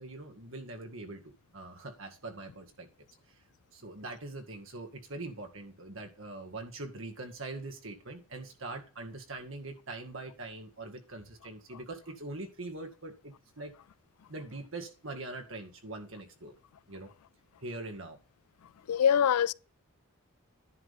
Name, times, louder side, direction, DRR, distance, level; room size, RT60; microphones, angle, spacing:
voice 1, 0.0-2.9 3.3-3.4 3.7-13.7 14.3-16.5 16.9-17.1 17.6-18.2, right 2 dB, 60° right, 2.0 m, -43 dB
voice 2, 18.9-19.5, left 8 dB, 90° left, 0.4 m, -23 dB
10.5 x 3.7 x 6.7 m
head